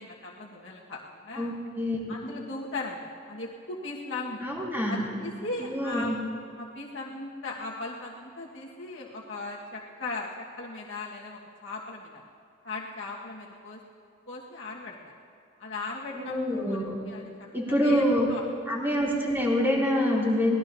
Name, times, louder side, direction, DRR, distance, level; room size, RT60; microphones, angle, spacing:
voice 1, 0.0-1.5 2.1-3.0 3.3-4.4 4.9-6.2 6.6-12.2 12.6-13.8 14.3-15.1 15.6-16.8 17.0-18.0 18.3-18.4, left 2 dB, 85° left, -4 dB, 1.6 m, -38 dB
voice 2, 1.4-2.0 4.4-5.1 5.6-6.1 16.1-17.0 17.5-18.3 18.7-20.6, equal, 10° right, -5 dB, 3.0 m, -26 dB
23.5 x 18.5 x 2.8 m, 2.6 s
head